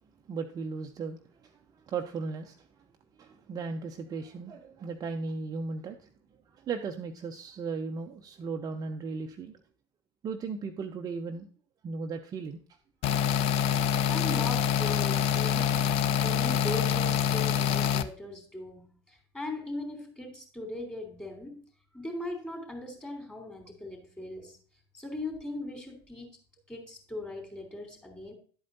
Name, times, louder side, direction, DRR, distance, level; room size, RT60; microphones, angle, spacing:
voice 1, 0.3-2.7 3.2-6.1 6.5-9.6 10.2-11.5 11.8-12.6, right 4 dB, 25° right, 4 dB, 0.8 m, -36 dB
sound 1, 13.0-18.0, left 9 dB, 45° left, 0.7 m, -26 dB
voice 2, 13.8-15.9 16.2-21.6 21.9-24.6 24.9-26.4 26.7-28.3, left 2 dB, 10° left, 4 dB, 3.5 m, -39 dB
11.5 x 8.4 x 2.7 m, 0.41 s
figure-of-eight pair, 85°, 14 cm